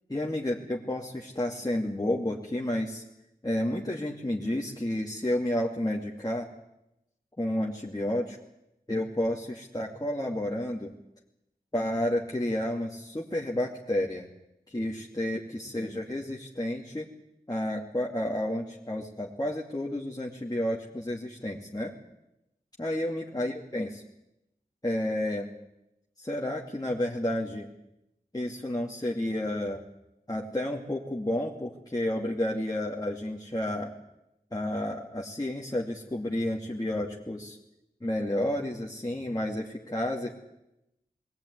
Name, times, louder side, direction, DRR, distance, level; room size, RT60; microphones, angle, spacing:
voice 1, 0.1-3.0 3.4-6.5 7.4-8.4 8.9-10.9 11.7-14.3 14.7-17.1 17.5-21.9 22.8-24.0 24.8-25.5 26.2-27.7 28.3-29.8 30.3-33.9 34.5-37.6 38.0-40.3, left 1 dB, 25° left, -2 dB, 2.4 m, -31 dB
21.5 x 16.5 x 9.6 m, 0.88 s
wide cardioid pair, 50°, 16 cm